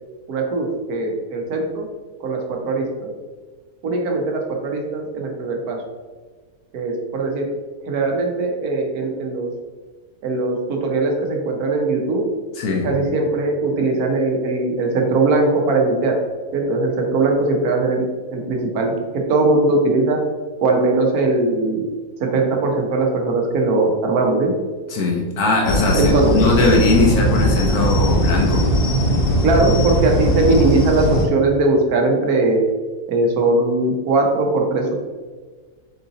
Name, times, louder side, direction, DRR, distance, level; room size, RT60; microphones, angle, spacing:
voice 1, 0.3-1.9 2.2-3.1 3.8-5.8 6.7-7.5 7.8-9.5 10.2-12.2 12.8-16.2 16.5-18.0 18.3-20.2 20.6-21.8 22.2-24.6 25.9-26.4 29.4-32.6 33.1-35.0, right 2 dB, 85° right, 1 dB, 1.3 m, -20 dB
voice 2, 12.5-12.9 24.9-28.7, left 2 dB, 80° left, -1 dB, 1.2 m, -19 dB
sound 1, 25.7-31.3, equal, 50° left, 0.8 m, -19 dB
4.7 x 2.7 x 3.9 m, 1.4 s
omnidirectional pair, 1.6 m